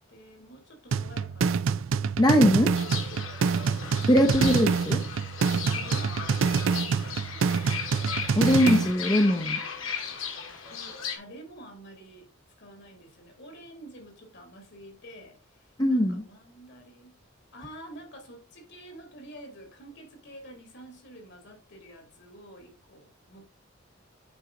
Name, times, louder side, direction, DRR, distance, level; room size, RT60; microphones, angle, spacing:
voice 1, 0.1-1.8 2.2-3.3 4.1-4.7 5.1-7.7 8.7-9.6 10.6-12.3 12.6-15.6 15.9-17.2 17.5-23.5, equal, 60° left, 2.6 m, -48 dB
sound 1, 0.9-8.9, right 5 dB, 75° right, 0.4 m, -26 dB
voice 2, 2.2-2.8 4.1-5.0 8.3-9.6 15.8-16.3, equal, 20° left, 0.7 m, -21 dB
Fowl / Bird, 2.8-11.2, left 6 dB, 80° left, 1.9 m, -36 dB
8.8 x 4.8 x 3.8 m
head